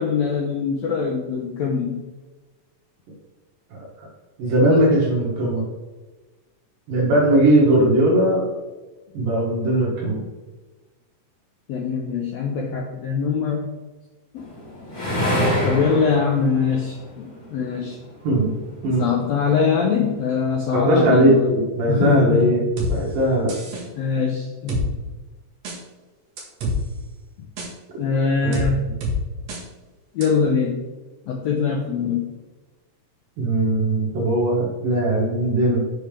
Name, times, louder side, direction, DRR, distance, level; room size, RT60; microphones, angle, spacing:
voice 1, 0.0-2.0 11.7-13.7 15.6-18.0 19.0-21.5 21.9-22.6 23.9-24.8 28.0-28.8 30.1-30.8 31.3-32.3, left 5 dB, 85° left, 0 dB, 1.5 m, -22 dB
voice 2, 4.4-5.6 6.9-8.5 9.1-10.2 18.2-18.5 18.8-19.1 20.7-22.6 22.9-23.6 28.4-28.6 33.4-35.8, right 1 dB, 80° right, -5 dB, 3.3 m, -19 dB
sound 1, 14.4-17.9 18.8-19.6, left 1 dB, 10° left, 1.7 m, -26 dB
sound 2, 22.8-22.9 23.5-23.8 24.7-24.8 25.6-25.8 26.4-26.8 27.6-27.7 28.5-28.7 29.0-29.1 29.5-29.6 30.2-30.3, right 1 dB, 60° right, 2.5 m, -26 dB
7.1 x 5.9 x 3.4 m, 1.2 s
omnidirectional pair, 4.0 m